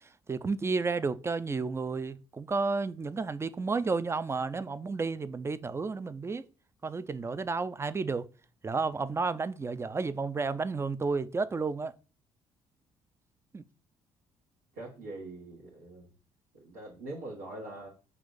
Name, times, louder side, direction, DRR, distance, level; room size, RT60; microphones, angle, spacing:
voice 1, 0.0-6.4 6.8-8.3 8.6-11.9 13.5-13.6, right 4 dB, 20° right, 0.4 m, -32 dB
voice 2, 14.7-16.1 16.5-17.9, right 2 dB, 80° right, 1.1 m, -43 dB
5.7 x 2.5 x 3.8 m
figure-of-eight pair, 45°, 14 cm